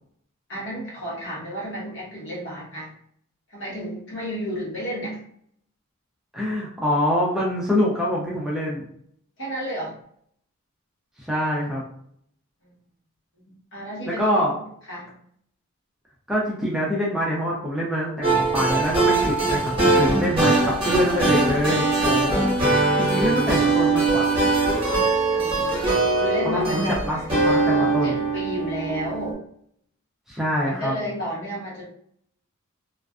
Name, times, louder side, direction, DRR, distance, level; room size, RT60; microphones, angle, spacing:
voice 1, 0.5-2.9 3.5-5.2 9.4-9.9 12.6-12.7 13.5-14.6 14.9-15.2 25.3-27.3 27.7-29.4 30.6-31.8, equal, 55° left, -5 dB, 1.0 m, -32 dB
voice 2, 6.3-8.8 11.2-11.8 14.1-14.5 16.3-24.2 26.4-28.2 30.3-30.9, equal, 5° right, -6 dB, 0.4 m, -25 dB
sound 1, 18.2-29.3, right 3 dB, 25° right, 0.9 m, -21 dB
2.4 x 2.2 x 2.3 m, 0.67 s
head